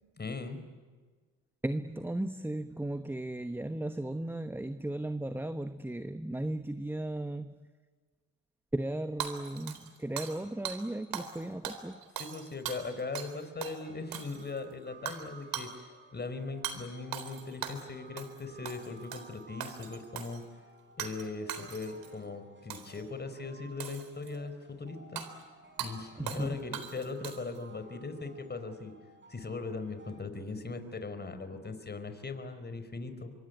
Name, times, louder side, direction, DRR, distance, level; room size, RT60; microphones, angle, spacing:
voice 1, 0.2-0.6 12.2-15.7 16.1-20.4 21.0-25.2 25.8-28.9 29.3-33.3, left 3 dB, 25° left, 10 dB, 4.4 m, -39 dB
voice 2, 1.6-7.5 8.7-12.0 26.2-26.6, right 1 dB, 5° right, 10 dB, 1.1 m, -36 dB
Hammer / Shatter, 9.2-10.4 10.6-10.8 11.1-11.4 11.6-13.3 13.6-13.8 14.1-14.6 15.1-15.2 15.5-15.7 16.6-16.8 17.1-17.9 18.2-18.4 18.6-19.3 19.6-20.4 21.0-21.2 21.5-22.1 22.7-23.0 23.8-24.4 25.2-25.3 25.8-25.9 26.3-26.5 26.7-27.6, right 9 dB, 65° right, 4.0 m, -39 dB
sound 1, 13.8-30.3, right 3 dB, 30° right, 6.1 m, -57 dB
26.0 x 23.5 x 9.4 m, 1.5 s
supercardioid pair, 75°, 38 cm